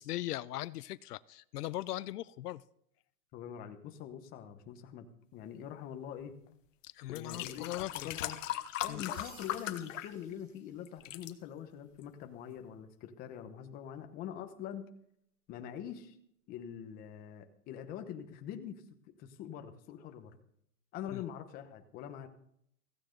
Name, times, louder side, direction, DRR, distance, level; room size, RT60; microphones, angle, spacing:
voice 1, 0.0-2.6 6.8-8.1 8.9-9.0 21.1-21.2, left 15 dB, 80° left, 0.7 m, -39 dB
voice 2, 3.3-5.1 5.3-6.3 7.1-8.4 8.8-14.9 15.5-16.2 16.5-20.4 20.9-22.3, left 9 dB, 20° left, 1.0 m, -44 dB
sound 1, 6.5-6.6 7.1-10.6 10.9-11.3 12.0-12.1, left 13 dB, 55° left, 1.2 m, -39 dB
sound 2, 9.1-11.2, right 2 dB, 35° right, 6.9 m, -57 dB
16.0 x 15.5 x 3.9 m
supercardioid pair, 165°, 46 cm